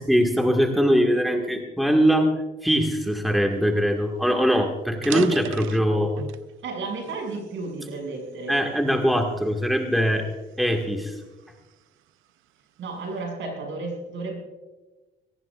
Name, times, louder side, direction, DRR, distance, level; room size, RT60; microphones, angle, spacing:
voice 1, 0.0-2.3 2.6-6.1 8.5-10.3 10.6-11.1, equal, ahead, 2 dB, 1.8 m, -22 dB
sound 1, 3.8-3.9 4.2-4.4 4.9-6.5 7.0-8.3 8.9-9.2 9.8-11.8, right 8 dB, 90° right, 0.7 m, -34 dB
voice 2, 6.6-8.5 12.8-14.4, right 3 dB, 70° right, 1 dB, 6.4 m, -33 dB
22.0 x 18.0 x 2.5 m, 1.2 s
cardioid pair, 90°, 20 cm